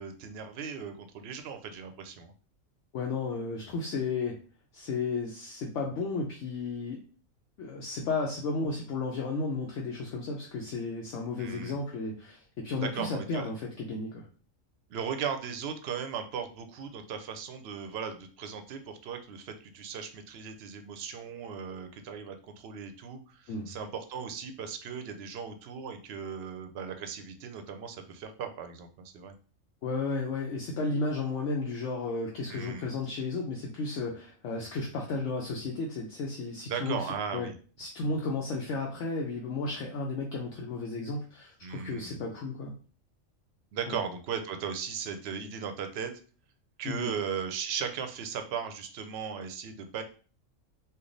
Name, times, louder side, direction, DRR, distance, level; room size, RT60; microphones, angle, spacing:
voice 1, 0.0-2.3 11.4-11.8 12.8-13.5 14.9-29.3 32.5-32.9 36.7-37.5 41.6-42.2 43.7-46.1 46.8-50.0, right 7 dB, 60° right, 7 dB, 0.7 m, -37 dB
voice 2, 2.9-4.4 4.7-7.0 7.6-14.3 23.5-23.7 29.8-37.5 37.8-42.7 43.9-44.0 46.9-47.1, left 3 dB, 70° left, -1 dB, 0.9 m, -33 dB
3.3 x 2.3 x 3.8 m, 0.39 s
omnidirectional pair, 1.3 m